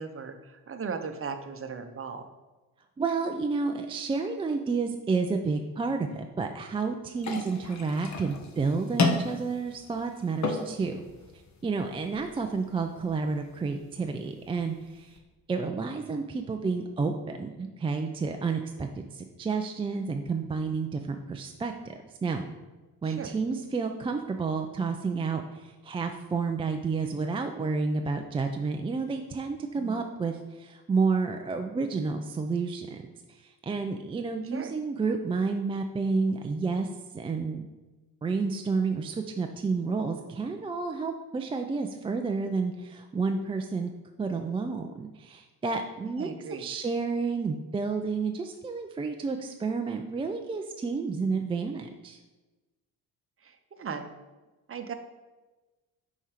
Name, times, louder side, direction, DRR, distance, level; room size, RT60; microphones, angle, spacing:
voice 1, 0.0-2.2 23.0-23.3 29.8-30.0 34.5-34.7 46.0-46.7 53.4-54.1 54.7-54.9, right 5 dB, 30° right, 7 dB, 0.8 m, -37 dB
voice 2, 3.0-11.0 11.6-15.2 15.5-22.4 23.0-33.0 33.3-36.9 37.1-37.7 38.2-43.9 44.2-46.3 46.6-52.2, right 4 dB, 15° right, 5 dB, 0.3 m, -30 dB
sound 1, 7.2-15.2, left 3 dB, 35° left, 1.1 m, -34 dB
5.4 x 4.4 x 4.9 m, 1.2 s
figure-of-eight pair, 45°, 47 cm